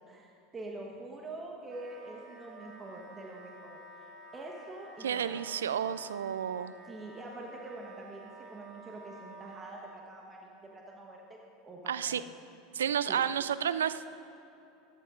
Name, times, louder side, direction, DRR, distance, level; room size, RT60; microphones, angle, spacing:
voice 1, 0.0-3.8 4.3-5.4 6.8-11.4 11.6-12.3 13.1-13.2, right 2 dB, 25° right, 0 dB, 1.2 m, -45 dB
Wind instrument woodwind instrument, 1.7-10.0, right 2 dB, 55° right, 2.0 m, -51 dB
voice 2, 5.0-6.7 11.9-12.2 12.7-14.1, right 8 dB, 85° right, 15 dB, 0.3 m, -31 dB
14.0 x 10.5 x 2.5 m, 2.9 s
hypercardioid pair, 85°, 0 cm